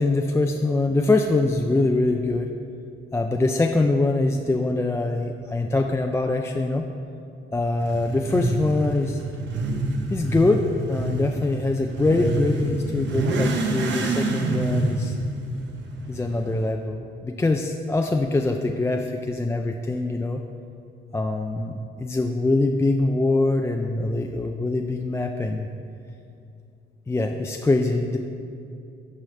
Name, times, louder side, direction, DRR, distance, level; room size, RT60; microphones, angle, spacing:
voice 1, 0.0-2.5 3.1-6.9 7.5-9.2 10.1-10.6 10.9-15.2 16.1-20.4 21.1-25.7 27.1-28.2, left 2 dB, 15° left, 3 dB, 0.3 m, -23 dB
Motorcycle / Accelerating revving vroom, 7.8-16.7, right 2 dB, 65° right, 0.9 m, -27 dB
12.0 x 4.9 x 3.2 m, 2.5 s
cardioid pair, 90°, 20 cm